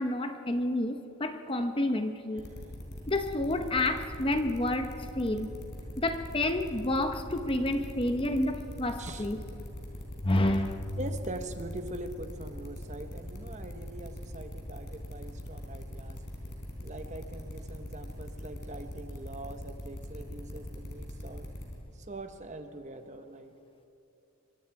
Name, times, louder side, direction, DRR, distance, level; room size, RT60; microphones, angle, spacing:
voice 1, 0.0-2.4 3.1-4.9 5.2-5.5 6.0-9.4 10.2-10.8, left 1 dB, 25° left, 7 dB, 0.8 m, -29 dB
sound 1, 2.4-21.7, equal, 50° left, 4.3 m, -41 dB
voice 2, 9.0-9.3 11.0-16.2 16.8-21.5 21.9-23.5, right 2 dB, 30° right, 7 dB, 1.1 m, -43 dB
24.5 x 24.0 x 4.8 m, 2.8 s
head